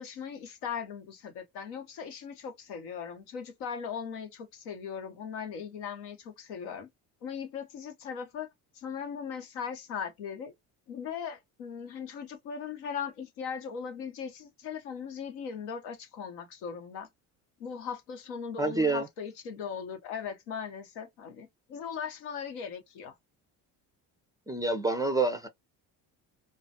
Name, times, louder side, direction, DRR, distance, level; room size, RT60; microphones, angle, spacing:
voice 1, 0.0-6.9 7.2-8.5 8.7-10.5 10.9-17.1 17.6-23.2, left 7 dB, 75° left, 0.9 m, -39 dB
voice 2, 18.6-19.1 24.5-25.5, right 3 dB, 10° right, 0.3 m, -27 dB
2.3 x 2.2 x 2.6 m
hypercardioid pair, 65°, 50 cm